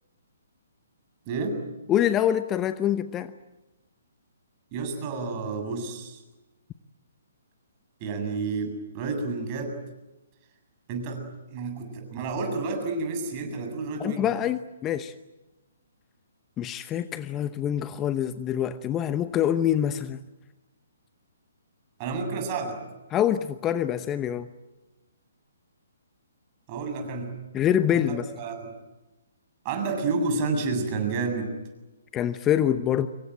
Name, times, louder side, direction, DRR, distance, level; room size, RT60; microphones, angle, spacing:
voice 1, 1.3-1.6 4.7-6.2 8.0-9.8 10.9-11.2 11.5-14.3 22.0-22.8 26.7-27.3 27.9-28.7 29.6-31.5, right 4 dB, 30° right, 5 dB, 7.6 m, -30 dB
voice 2, 1.9-3.3 14.0-15.1 16.6-20.2 23.1-24.5 27.5-28.3 32.1-33.1, left 10 dB, 20° left, 12 dB, 0.9 m, -25 dB
26.5 x 23.0 x 9.0 m, 1.1 s
figure-of-eight pair, 130°, 0 cm